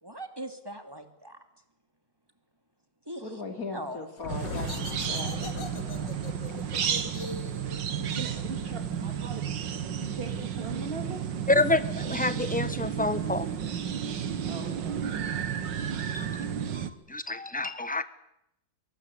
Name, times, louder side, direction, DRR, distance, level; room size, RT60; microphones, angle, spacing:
voice 1, 0.0-1.4 3.1-3.4 3.7-4.1, right 1 dB, 15° right, 7 dB, 2.6 m, -40 dB
voice 2, 3.2-5.6 9.0-9.1, left 3 dB, 50° left, 6 dB, 3.2 m, -39 dB
sound 1, 4.2-9.6, left 4 dB, 80° left, 2.6 m, -40 dB
sound 2, 4.3-16.9, right 8 dB, 85° right, 2.0 m, -32 dB
voice 3, 8.0-9.5 9.9-11.3 14.4-15.0, right 3 dB, 30° right, 5 dB, 3.3 m, -40 dB
voice 4, 11.5-13.5 16.1-16.3 16.7-16.8 17.1-18.0, left 2 dB, 5° left, 13 dB, 1.0 m, -27 dB
24.5 x 23.0 x 8.4 m, 0.80 s
omnidirectional pair, 1.9 m